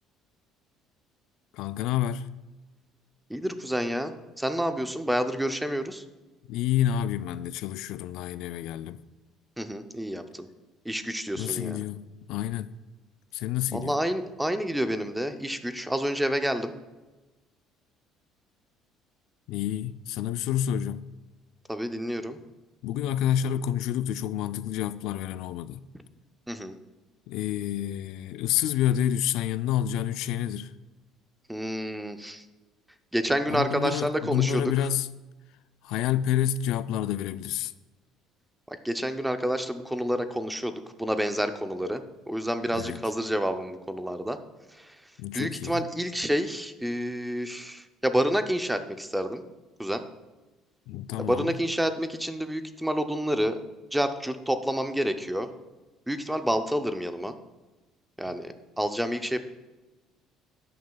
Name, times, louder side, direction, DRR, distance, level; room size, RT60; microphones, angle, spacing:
voice 1, 1.5-2.3 6.5-9.0 11.4-12.7 13.3-13.9 19.5-21.1 22.8-25.9 27.3-30.7 33.5-35.1 35.8-37.7 42.7-43.0 45.2-45.9 50.9-51.6, left 11 dB, 65° left, 0.3 m, -28 dB
voice 2, 3.3-6.0 9.6-10.5 10.8-11.8 13.7-16.7 21.7-22.4 26.5-26.7 31.5-32.4 33.1-34.7 38.7-44.4 44.7-45.0 45.3-49.4 49.8-50.0 51.2-53.6 53.9-55.5 56.1-57.3 58.2-59.4, equal, 5° right, 0.5 m, -29 dB
13.0 x 9.3 x 2.3 m
cardioid pair, 175°, 0 cm